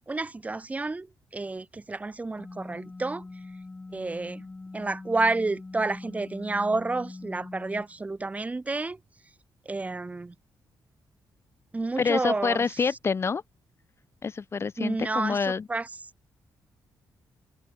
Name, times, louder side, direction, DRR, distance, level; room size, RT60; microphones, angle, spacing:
voice 1, 0.1-1.1 1.3-3.2 3.9-4.4 4.7-9.0 9.6-10.3 11.7-12.6 14.8-15.9, right 3 dB, 20° right, 1.5 m, -30 dB
sound 1, 2.4-7.9, left 3 dB, 20° left, 4.0 m, -42 dB
voice 2, 12.0-13.4 14.2-15.7, left 5 dB, 35° left, 1.5 m, -27 dB
cardioid pair, 135°, 8 cm